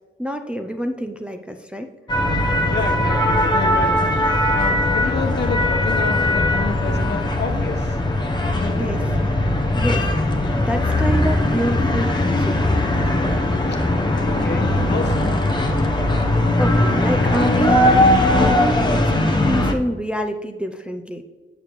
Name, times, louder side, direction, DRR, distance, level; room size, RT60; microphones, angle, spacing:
voice 1, 0.2-1.9 8.7-9.0 9.7-10.1 10.6-13.0 16.0-16.2 16.6-18.0 18.4-21.2, equal, 5° right, 5 dB, 0.4 m, -27 dB
sound 1, 2.1-19.7, left 1 dB, 20° left, 0.8 m, -19 dB
voice 2, 2.7-4.2 4.5-8.0 8.5-8.9 13.7-13.8 14.2-15.3, left 4 dB, 60° left, 4 dB, 0.9 m, -29 dB
8.4 x 6.7 x 3.0 m, 1.2 s
wide cardioid pair, 135°, 20 cm